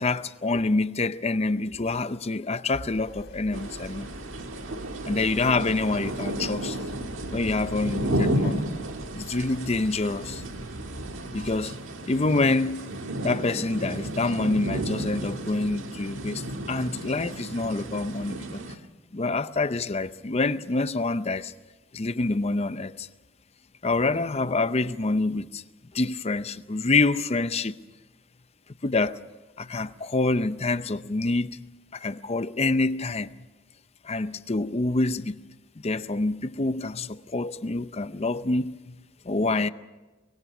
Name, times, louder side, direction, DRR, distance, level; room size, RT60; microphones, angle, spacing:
voice 1, 0.0-4.1 5.0-6.8 7.3-8.6 9.1-10.4 11.3-11.7 12.1-12.9 13.2-18.6 19.1-21.5 21.9-23.1 23.8-25.6 25.9-27.7 28.8-29.2 29.6-31.6 31.9-33.3 34.0-35.4 35.8-38.9 39.3-39.7, left 3 dB, 30° left, 0.6 m, -26 dB
sound 1, 2.9-11.6, equal, 65° left, 3.2 m, -44 dB
sound 2, 3.5-18.8, right 1 dB, 70° right, 1.7 m, -33 dB
24.0 x 21.0 x 6.1 m
head